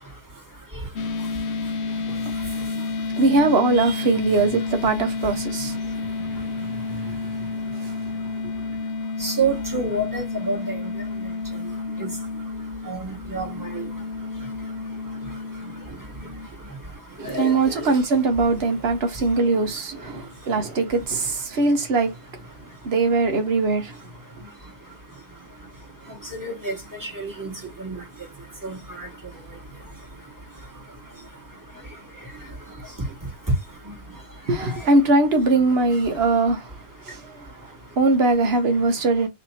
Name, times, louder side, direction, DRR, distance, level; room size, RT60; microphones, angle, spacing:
sound 1, 1.0-16.5, left 4 dB, 65° left, 0.9 m, -30 dB
voice 1, 3.2-5.7 17.3-22.1 22.8-23.9 34.5-36.6 37.1-37.2 38.0-39.3, right 3 dB, 55° right, 1.1 m, -21 dB
voice 2, 9.2-10.8 12.0-12.1 12.9-13.5 13.7-13.8 17.2-17.9 26.3-26.8 27.0-27.5 27.8-28.0 28.6-29.1, right 3 dB, 15° right, 1.5 m, -28 dB
3.2 x 2.9 x 4.0 m
omnidirectional pair, 1.3 m